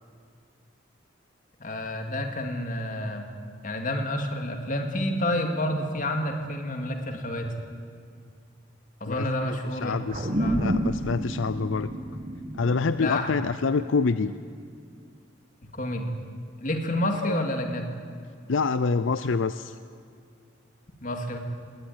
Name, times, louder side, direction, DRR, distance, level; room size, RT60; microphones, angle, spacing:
voice 1, 1.6-3.3 3.6-7.5 9.0-9.9 10.3-10.7 13.0-13.3 15.7-16.1 16.6-17.8 21.0-21.4, left 1 dB, 40° left, 4 dB, 2.4 m, -29 dB
voice 2, 9.8-10.3 10.6-11.9 12.6-14.3 17.2-17.3 18.5-19.7, left 4 dB, 80° left, 13 dB, 0.5 m, -26 dB
sound 1, 10.1-14.9, equal, 35° right, 1.5 m, -30 dB
20.5 x 18.0 x 9.5 m, 2.2 s
head